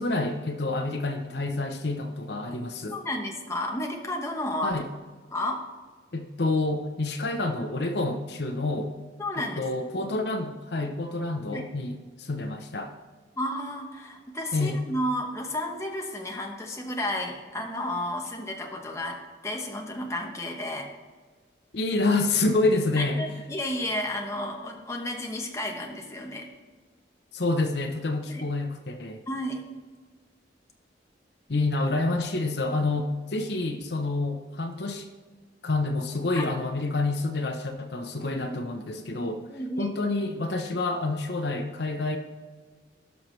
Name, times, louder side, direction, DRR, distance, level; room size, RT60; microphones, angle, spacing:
voice 1, 0.0-3.0 4.6-4.9 6.1-8.9 9.4-12.9 14.5-14.8 21.7-23.2 27.3-29.3 31.5-35.1 35.6-39.4 39.8-42.2, left 2 dB, 65° left, 6 dB, 0.8 m, -28 dB
voice 2, 2.9-4.7 5.3-5.6 9.2-9.6 11.5-11.7 13.4-19.2 19.4-20.9 23.0-26.5 28.2-28.4 29.2-29.6 36.3-36.5 38.4-38.5 39.5-40.0, left 1 dB, 15° left, 1 dB, 1.0 m, -32 dB
17.5 x 6.0 x 3.2 m, 1.4 s
head